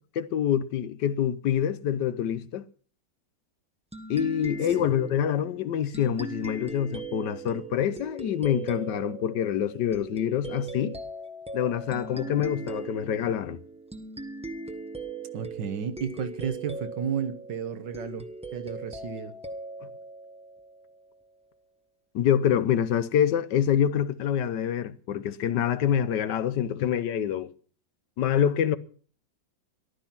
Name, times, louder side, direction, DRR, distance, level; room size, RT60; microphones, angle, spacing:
voice 1, 0.2-2.7 4.1-11.0 11.5-13.6 22.1-27.5 28.2-28.8, left 9 dB, 70° left, 1.4 m, -26 dB
sound 1, 3.9-21.1, right 2 dB, 5° right, 0.9 m, -39 dB
voice 2, 15.3-19.3, right 7 dB, 70° right, 1.8 m, -33 dB
15.0 x 12.0 x 5.8 m
omnidirectional pair, 2.0 m